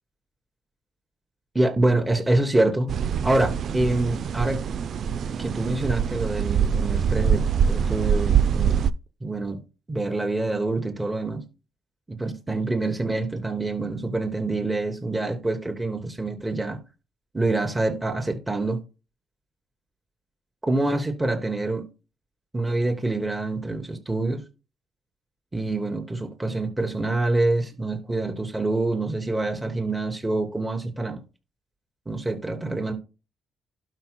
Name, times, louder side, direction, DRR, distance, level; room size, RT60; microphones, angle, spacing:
voice 1, 1.5-2.9 3.2-4.6 5.4-8.9 9.2-9.6 9.9-11.4 12.1-16.8 17.3-18.8 20.6-21.8 22.5-24.4 25.5-31.2 32.1-32.9, right 2 dB, 15° right, 2.9 m, -26 dB
sound 1, 2.9-8.9, right 7 dB, 60° right, 0.4 m, -24 dB
12.5 x 5.7 x 2.2 m
cardioid pair, 90°, 0 cm